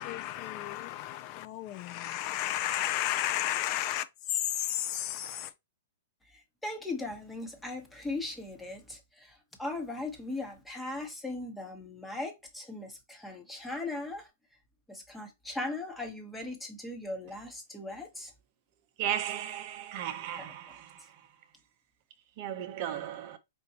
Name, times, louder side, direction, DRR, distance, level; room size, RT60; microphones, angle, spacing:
voice 1, 0.0-4.0 4.3-5.5, left 13 dB, 40° left, 0.5 m, -32 dB
voice 2, 6.6-9.0 9.6-14.2 14.9-18.3 20.4-20.5, left 2 dB, 5° left, 1.1 m, -38 dB
voice 3, 19.0-20.8 22.4-23.4, right 10 dB, 45° right, 0.7 m, -35 dB
5.2 x 2.5 x 2.9 m
hypercardioid pair, 130°, 0 cm